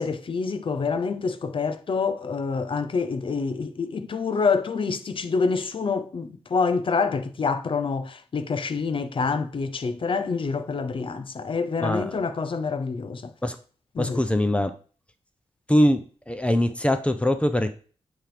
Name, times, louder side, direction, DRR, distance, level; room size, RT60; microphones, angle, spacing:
voice 1, 0.0-13.3 13.9-14.3, left 5 dB, 50° left, 0.9 m, -27 dB
voice 2, 14.0-14.7 15.7-16.0 16.3-17.8, left 1 dB, 10° left, 0.9 m, -22 dB
8.9 x 3.7 x 5.0 m
cardioid pair, 75°, 11 cm